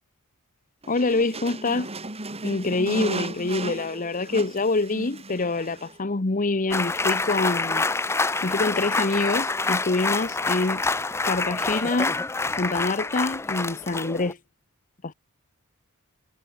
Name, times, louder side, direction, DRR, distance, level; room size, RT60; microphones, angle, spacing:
sound 1, 0.8-6.0, right 2 dB, 25° right, 3.6 m, -35 dB
voice 1, 0.9-1.9 2.4-7.9 8.4-10.8 11.2-12.1 12.6-14.4 15.0-15.1, left 3 dB, 35° left, 1.0 m, -25 dB
sound 2, 6.7-14.3, left 3 dB, 10° left, 0.4 m, -27 dB
head